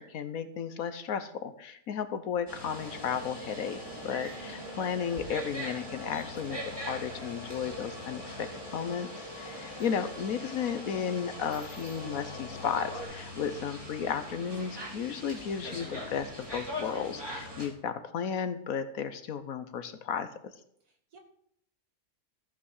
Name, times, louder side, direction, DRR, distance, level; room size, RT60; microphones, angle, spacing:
voice 1, 0.0-20.5, left 7 dB, 65° left, 11 dB, 1.2 m, -34 dB
sound 1, 2.5-17.7, equal, 15° right, 3.0 m, -42 dB
sound 2, 2.7-13.0, left 1 dB, 50° left, 3.6 m, -45 dB
voice 2, 20.8-21.2, right 3 dB, 70° right, 3 dB, 2.5 m, -60 dB
14.0 x 6.0 x 6.3 m, 0.70 s
omnidirectional pair, 1.6 m